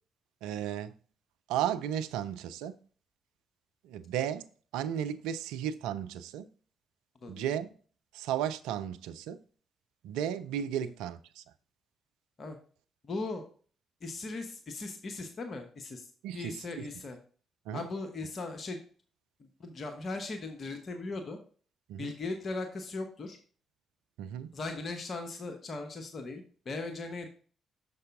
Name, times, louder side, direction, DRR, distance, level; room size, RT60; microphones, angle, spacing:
voice 1, 0.4-0.9 1.5-2.8 3.8-4.5 4.7-6.5 7.3-7.7 8.1-9.4 10.0-11.4 16.2-16.8 17.7-17.9 21.9-22.1 24.2-24.5, right 10 dB, 75° right, 0.4 m, -34 dB
voice 2, 13.0-13.4 14.0-17.2 17.7-18.8 19.4-21.4 22.0-23.4 24.5-27.3, left 3 dB, 45° left, 1.0 m, -38 dB
6.6 x 5.4 x 3.6 m
hypercardioid pair, 40°, 0 cm